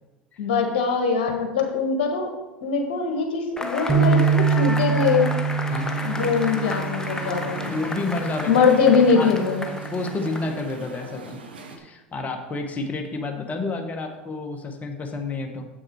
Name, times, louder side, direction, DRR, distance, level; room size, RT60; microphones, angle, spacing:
voice 1, 0.4-2.3 2.6-5.3 6.0-7.7 8.5-9.6, left 5 dB, 70° left, 3 dB, 1.4 m, -22 dB
Cheering / Applause / Crowd, 3.6-10.8, left 1 dB, 10° left, 0.9 m, -33 dB
sound 1, 3.9-10.1, right 6 dB, 20° right, 1.5 m, -25 dB
Musical instrument, 5.7-11.8, right 3 dB, 85° right, 1.0 m, -40 dB
voice 2, 7.7-8.8 9.1-9.3 9.6-11.4 11.8-15.6, left 3 dB, 30° left, 4 dB, 1.4 m, -30 dB
7.5 x 6.4 x 4.6 m, 1.1 s
hypercardioid pair, 75°, 5 cm